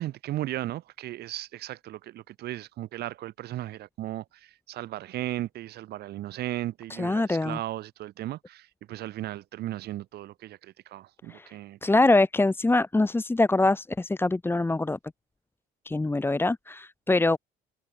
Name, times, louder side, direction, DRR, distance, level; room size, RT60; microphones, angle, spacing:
voice 1, 0.0-11.8, right 14 dB, 70° right, 4.0 m, -36 dB
voice 2, 7.0-7.6 11.3-11.5 11.8-15.0 15.9-17.4, left 2 dB, 15° left, 2.5 m, -24 dB
cardioid pair, 110°, 17 cm